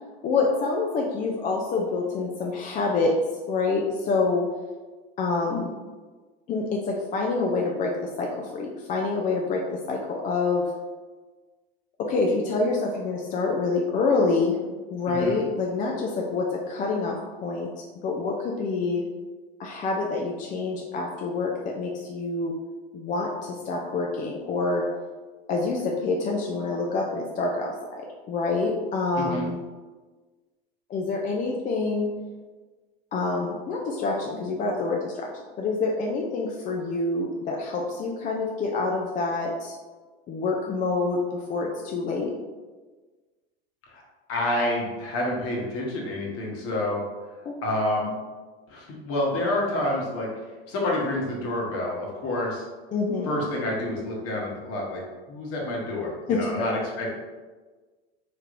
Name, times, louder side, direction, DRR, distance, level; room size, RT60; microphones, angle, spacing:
voice 1, 0.2-3.2 3.5-4.5 5.2-5.7 6.5-10.7 12.0-14.6 14.9-17.7 18.0-19.0 19.6-22.5 22.9-24.8 25.5-28.0 28.3-29.6 30.9-32.1 33.1-35.3 35.6-39.7 40.3-42.3 47.5-47.6 52.9-53.4 56.3-56.7, left 3 dB, 25° left, -1 dB, 0.3 m, -27 dB
voice 2, 15.1-15.4 29.2-29.5 44.3-47.0 47.6-48.2 48.7-50.3 50.7-52.6 53.2-55.0 55.3-57.1, left 1 dB, 45° left, -2 dB, 1.1 m, -28 dB
3.2 x 3.1 x 2.5 m, 1.3 s
hypercardioid pair, 90°, 32 cm